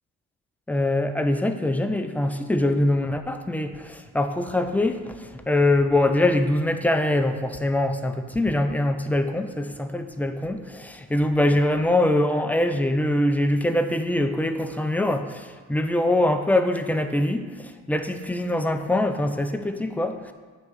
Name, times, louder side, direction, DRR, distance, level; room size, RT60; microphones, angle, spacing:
voice 1, 0.7-20.3, left 1 dB, 5° left, 7 dB, 0.4 m, -23 dB
9.0 x 3.2 x 4.7 m, 1.5 s
cardioid pair, 90°, 30 cm